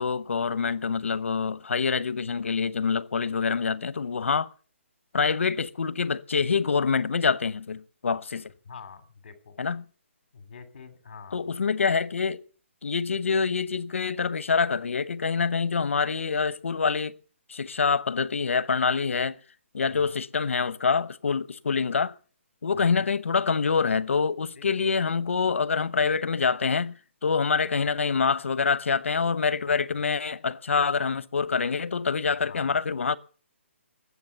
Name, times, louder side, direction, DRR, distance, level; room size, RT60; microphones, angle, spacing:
voice 1, 0.0-4.5 5.1-8.5 9.6-9.8 11.3-12.4 12.8-17.2 17.5-19.4 19.7-22.1 22.6-27.0 27.2-33.2, left 5 dB, 70° left, 1.0 m, -26 dB
voice 2, 8.6-9.6 10.3-11.4 19.9-20.2 22.7-23.1 24.6-25.0 29.7-29.8 32.5-32.7, left 5 dB, 45° left, 2.9 m, -46 dB
20.5 x 8.1 x 6.8 m
hypercardioid pair, 180°, 7 cm